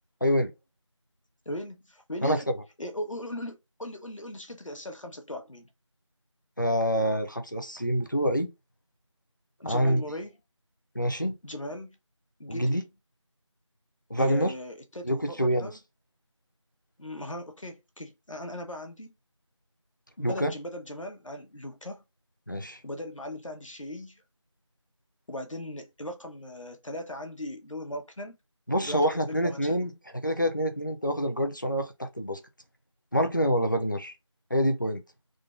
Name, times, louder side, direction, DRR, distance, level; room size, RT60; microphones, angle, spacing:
voice 1, 0.2-0.5 2.2-2.4 6.6-8.5 9.7-10.0 10.9-11.4 12.5-12.8 14.1-14.5 15.0-15.7 20.2-20.5 22.5-22.8 28.7-29.9 30.2-32.4 33.1-34.1 34.5-35.0, equal, 40° left, 0.6 m, -26 dB
voice 2, 1.4-2.5 2.8-5.7 9.6-10.3 11.4-12.0 12.4-12.9 14.2-15.8 17.0-19.1 20.2-22.0 22.8-24.2 25.3-28.4 28.8-29.9, left 1 dB, 80° left, 1.3 m, -38 dB
3.8 x 2.6 x 3.5 m
figure-of-eight pair, 180°, 16 cm